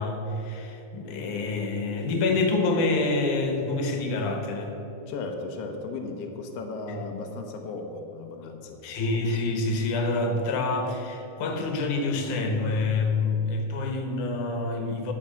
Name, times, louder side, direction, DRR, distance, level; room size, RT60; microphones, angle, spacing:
voice 1, 0.0-4.8 6.9-7.0 8.8-15.1, left 3 dB, 85° left, 4 dB, 2.6 m, -27 dB
voice 2, 5.1-8.8, left 3 dB, 65° left, 3 dB, 1.8 m, -36 dB
10.0 x 6.1 x 7.4 m, 3.0 s
omnidirectional pair, 3.4 m